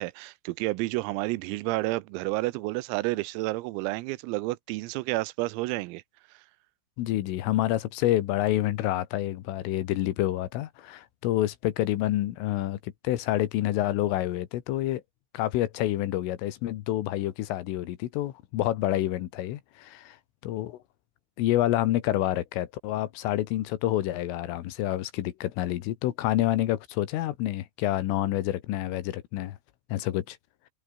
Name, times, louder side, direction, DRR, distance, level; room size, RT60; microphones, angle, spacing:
voice 1, 0.0-6.0, right 21 dB, 85° right, 3.5 m, -30 dB
voice 2, 7.0-15.0 15.3-20.2 20.4-20.8 21.4-29.6 29.9-30.4, left 14 dB, 75° left, 4.0 m, -28 dB
omnidirectional pair, 6.0 m